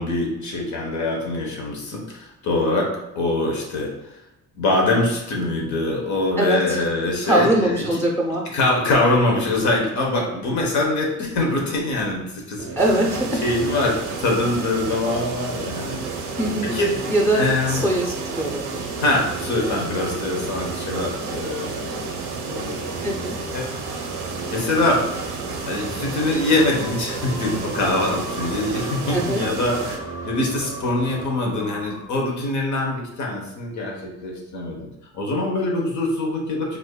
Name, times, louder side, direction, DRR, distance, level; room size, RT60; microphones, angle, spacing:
voice 1, 0.0-2.9 3.1-3.9 4.6-7.9 8.5-12.8 13.4-16.0 16.6-16.9 17.3-17.9 19.0-22.0 22.5-22.8 23.5-23.7 24.5-25.0 25.7-34.9 35.1-36.8, left 2 dB, 70° left, -1 dB, 1.1 m, -23 dB
voice 2, 6.4-6.8 7.2-8.4 12.8-13.5 16.4-16.8 17.1-18.9 23.0-23.4 28.0-28.1 29.1-29.4, right 1 dB, 10° left, -2 dB, 0.6 m, -22 dB
sound 1, 12.6-31.3, right 6 dB, 50° right, 0.6 m, -36 dB
sound 2, 12.8-30.0, right 3 dB, 85° right, 0.8 m, -32 dB
sound 3, 22.8-32.6, left 1 dB, 45° left, 0.9 m, -41 dB
4.8 x 2.6 x 2.3 m, 0.94 s
cardioid pair, 90°, 30 cm